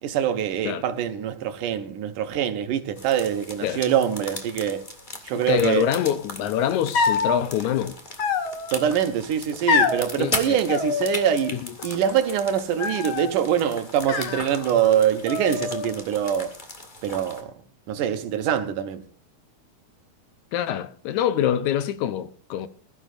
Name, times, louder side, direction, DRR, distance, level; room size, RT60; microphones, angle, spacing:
voice 1, 0.0-4.8 5.2-5.9 8.7-16.5 17.0-17.6 17.9-19.0, right 9 dB, 80° right, 2.8 m, -24 dB
sound 1, 3.0-17.4, left 2 dB, 20° left, 1.5 m, -38 dB
voice 2, 5.3-8.0 10.2-10.6 11.5-11.7 20.5-22.7, left 10 dB, 75° left, 2.1 m, -25 dB
sound 2, 6.9-7.4 8.2-8.9 9.7-10.1 10.7-11.5 11.8-12.3 12.8-13.3 14.0-14.9 15.3-16.0, left 5 dB, 50° left, 1.8 m, -26 dB
21.5 x 12.5 x 2.5 m
omnidirectional pair, 3.6 m